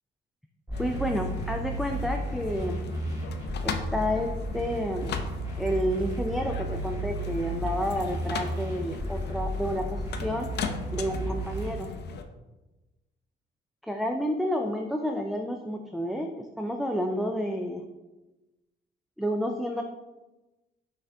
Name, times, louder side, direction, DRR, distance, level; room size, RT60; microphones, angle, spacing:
sound 1, 0.7-12.2, left 4 dB, 60° left, 0.5 m, -37 dB
sound 2, 0.7-11.7, right 1 dB, 15° right, 1.5 m, -34 dB
voice 1, 0.8-2.8 3.6-5.2 5.6-10.5 10.9-11.9 13.8-17.9 19.2-19.8, equal, ahead, 2 dB, 0.3 m, -30 dB
5.6 x 2.8 x 3.4 m, 1.1 s
cardioid pair, 90°, 20 cm